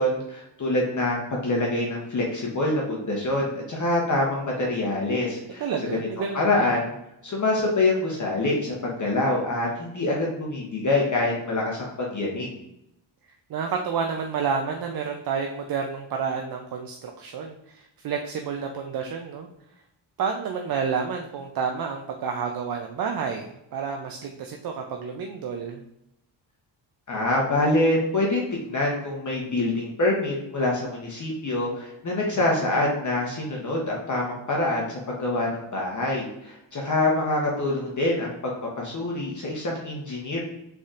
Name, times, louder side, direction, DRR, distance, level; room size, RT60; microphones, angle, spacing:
voice 1, 0.0-5.6 5.9-6.0 6.3-6.9 7.2-12.5 27.1-40.4, left 2 dB, 35° left, -2 dB, 0.9 m, -25 dB
voice 2, 5.6-6.7 13.5-19.5 20.2-25.8, right 6 dB, 50° right, 3 dB, 0.5 m, -30 dB
3.9 x 3.5 x 2.4 m, 0.83 s
cardioid pair, 80°, 49 cm